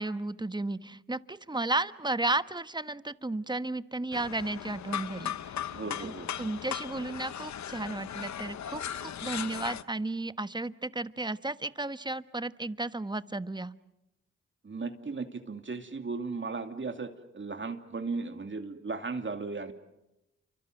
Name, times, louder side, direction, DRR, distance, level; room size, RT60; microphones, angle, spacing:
voice 1, 0.0-5.3 6.0-6.1 6.4-13.7, right 2 dB, 15° right, 13 dB, 1.2 m, -33 dB
sound 1, 4.1-9.8, left 9 dB, 70° left, 1.0 m, -38 dB
voice 2, 5.7-6.3 14.6-19.7, right 4 dB, 40° right, 6 dB, 2.6 m, -36 dB
29.0 x 24.5 x 7.9 m, 0.91 s
supercardioid pair, 50°, 29 cm